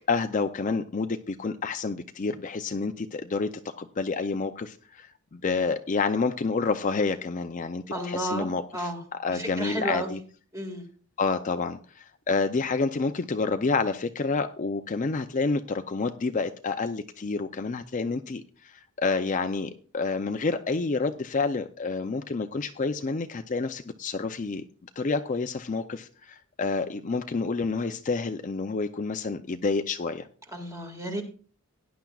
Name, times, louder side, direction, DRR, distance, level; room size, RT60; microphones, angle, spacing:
voice 1, 0.1-3.5 3.8-8.9 9.2-10.2 11.2-24.6 25.0-30.3, left 4 dB, 35° left, 8 dB, 0.4 m, -29 dB
voice 2, 7.9-9.0 9.3-10.1 10.5-10.8 30.5-31.2, right 1 dB, 15° right, 2 dB, 1.9 m, -32 dB
17.5 x 10.5 x 2.3 m, 0.40 s
head